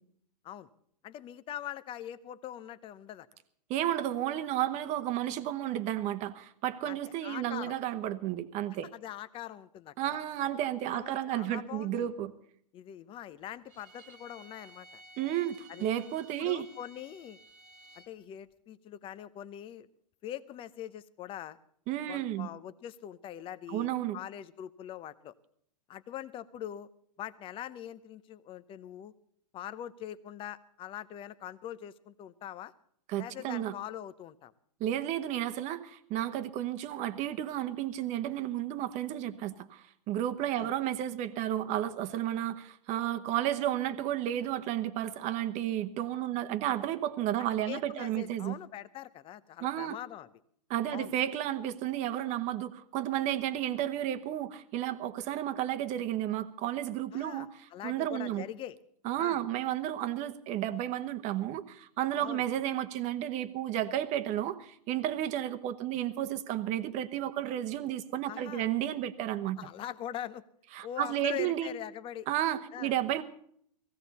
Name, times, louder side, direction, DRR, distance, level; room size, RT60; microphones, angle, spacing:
voice 1, 1.0-3.3 6.8-7.8 8.9-10.2 10.9-12.1 12.7-15.0 15.7-15.9 16.4-17.4 18.0-19.9 20.2-21.6 22.1-25.3 25.9-26.9 27.2-29.1 29.5-32.7 33.2-34.5 40.6-40.7 47.4-50.3 50.9-51.1 57.1-58.8 59.2-59.4 62.2-62.5 68.3-68.7 69.6-70.4 70.8-72.3 72.7-72.9, left 11 dB, 25° left, 16 dB, 0.7 m, -43 dB
voice 2, 3.7-8.9 10.0-12.3 15.2-16.7 21.9-22.5 23.7-24.2 33.1-33.7 34.8-48.6 49.6-49.9 50.7-57.5 57.8-58.5 59.0-69.7 70.8-71.7 72.3-73.2, right 12 dB, 35° right, 11 dB, 1.0 m, -32 dB
Bowed string instrument, 13.7-18.1, right 2 dB, 10° left, 2.4 m, -55 dB
17.5 x 15.5 x 4.2 m, 0.65 s
hypercardioid pair, 120°, 21 cm